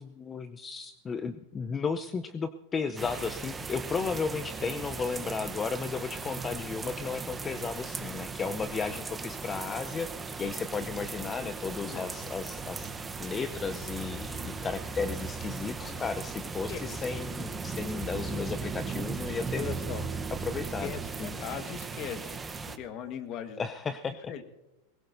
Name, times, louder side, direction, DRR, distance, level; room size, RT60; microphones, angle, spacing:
voice 1, 0.0-12.9 13.2-19.8 20.4-20.9 21.2-21.4 23.6-24.2, left 5 dB, 25° left, 10 dB, 0.6 m, -34 dB
sound 1, 3.0-22.8, right 4 dB, 15° right, 0.9 m, -37 dB
voice 2, 11.8-12.1 15.8-16.1 16.7-17.1 19.6-20.1 20.8-23.6 24.3-24.4, left 8 dB, 45° left, 9 dB, 1.5 m, -40 dB
21.0 x 19.0 x 2.7 m, 0.97 s
hypercardioid pair, 105°, 0 cm